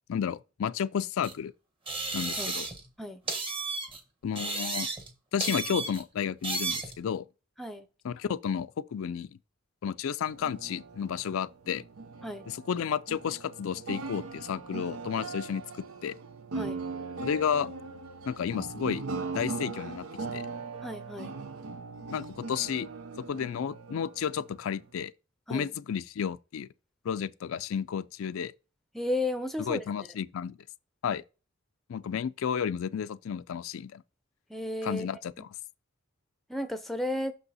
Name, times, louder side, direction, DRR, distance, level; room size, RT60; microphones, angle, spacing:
voice 1, 0.1-1.5 2.1-2.7 4.2-4.9 5.3-7.2 8.0-9.3 9.8-11.8 12.5-15.6 16.0-16.2 17.2-17.7 18.3-19.0 19.3-20.1 20.3-20.5 22.1-22.9 23.3-25.1 25.5-26.7 27.0-28.5 29.7-30.6 31.0-31.2 31.9-34.0 34.8-35.5, left 7 dB, 70° left, 0.4 m, -32 dB
sound 1, 1.2-1.3 1.9-2.9 3.3-4.0 4.4-5.1 5.4-6.0 6.4-7.0, right 3 dB, 25° right, 1.1 m, -33 dB
sound 2, 10.2-24.9, right 3 dB, 90° right, 0.8 m, -40 dB
voice 2, 20.8-21.4 25.5-25.7 28.9-29.8 34.5-35.1 35.4-35.5 36.5-37.3, left 1 dB, ahead, 0.5 m, -33 dB
6.3 x 5.4 x 4.1 m
head